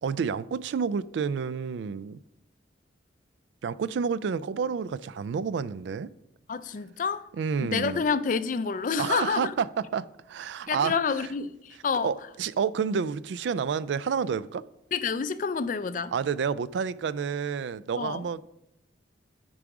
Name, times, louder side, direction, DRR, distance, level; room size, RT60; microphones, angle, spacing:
voice 1, 0.0-2.2 3.6-6.1 7.4-8.0 9.0-9.7 9.9-11.0 12.0-14.6 16.1-18.4, right 6 dB, 75° right, 0.3 m, -29 dB
voice 2, 6.5-7.2 7.6-9.5 10.7-12.1 14.9-16.1 18.0-18.3, left 5 dB, 45° left, 0.4 m, -28 dB
8.8 x 4.8 x 4.8 m
head